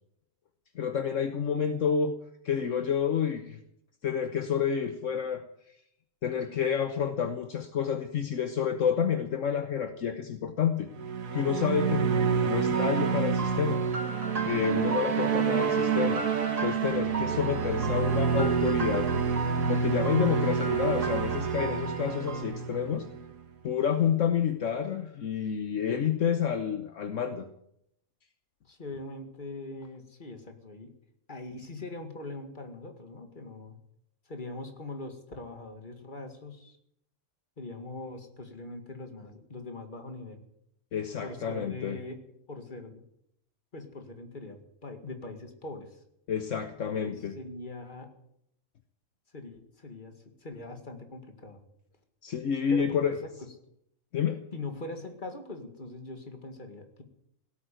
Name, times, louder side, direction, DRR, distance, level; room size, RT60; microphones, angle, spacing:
voice 1, 0.7-2.1 2.4-3.6 4.0-5.4 6.2-10.9 11.3-13.8 14.4-16.3 16.6-19.1 19.7-23.1 23.6-27.5 40.9-42.0 46.3-47.3 52.2-53.2 54.1-54.4, left 7 dB, 65° left, 8 dB, 1.3 m, -29 dB
sound 1, 10.9-23.4, right 6 dB, 90° right, 1.8 m, -28 dB
sound 2, 12.7-22.4, right 4 dB, 30° right, 1.3 m, -38 dB
voice 2, 25.7-26.2 28.7-30.9 31.3-33.8 34.3-36.8 37.6-40.4 41.2-42.2 42.5-43.0 43.7-46.0 47.0-48.1 49.3-50.1 50.4-51.6 52.7-53.3 54.5-57.0, left 2 dB, 35° left, 6 dB, 2.2 m, -42 dB
17.5 x 8.8 x 9.1 m, 0.76 s
omnidirectional pair, 1.4 m